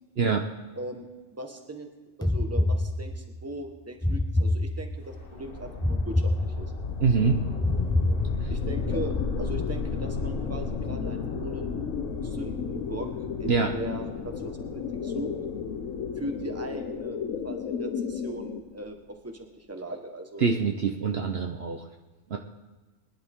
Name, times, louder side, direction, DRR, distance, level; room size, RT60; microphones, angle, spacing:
voice 1, 0.7-1.1 1.3-1.9 2.2-6.7 8.5-11.7 12.2-13.1 13.4-15.3 16.2-17.2 17.4-19.0 19.2-20.5, right 1 dB, 10° right, 4 dB, 1.3 m, -39 dB
sound 1, 2.2-3.4 4.0-5.2 5.8-7.0 7.6-8.8, left 1 dB, 5° left, 0.4 m, -26 dB
sound 2, 5.0-18.1, left 4 dB, 45° left, 1.2 m, -34 dB
voice 2, 7.0-7.4 8.4-8.5 13.4-13.7 20.4-21.8 22.3-22.4, right 5 dB, 55° right, 3 dB, 1.0 m, -24 dB
sound 3, 8.6-18.6, left 7 dB, 75° left, 1.2 m, -35 dB
21.5 x 11.0 x 3.7 m, 1.2 s
omnidirectional pair, 1.4 m